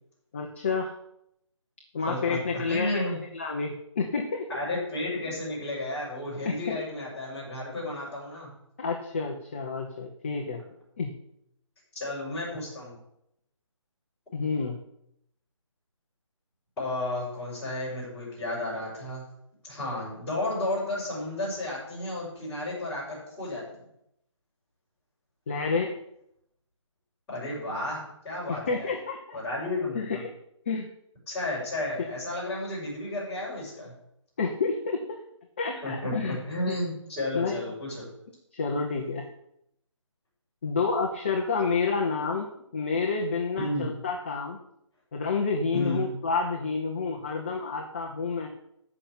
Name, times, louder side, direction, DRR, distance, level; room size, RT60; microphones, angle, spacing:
voice 1, 0.3-0.9 1.9-3.1 3.3-4.5 5.3-5.4 6.4-6.8 8.8-10.6 11.0-11.2 14.3-14.8 25.5-25.9 28.5-29.4 29.9-30.3 30.7-30.9 34.4-35.2 35.6-36.4 36.7-36.8 37.3-37.6 38.5-39.2 40.6-44.6 45.1-48.5, left 4 dB, 25° left, 2 dB, 1.0 m, -29 dB
voice 2, 2.1-3.2 4.5-8.5 12.0-13.0 16.8-19.2 19.6-23.6 27.3-28.0 28.2-28.9 29.3-30.2 31.3-33.9 35.8-38.0 43.6-43.9 45.7-46.1, left 1 dB, 5° left, -11 dB, 5.8 m, -32 dB
14.0 x 6.0 x 8.7 m, 0.78 s
hypercardioid pair, 175°, 16 cm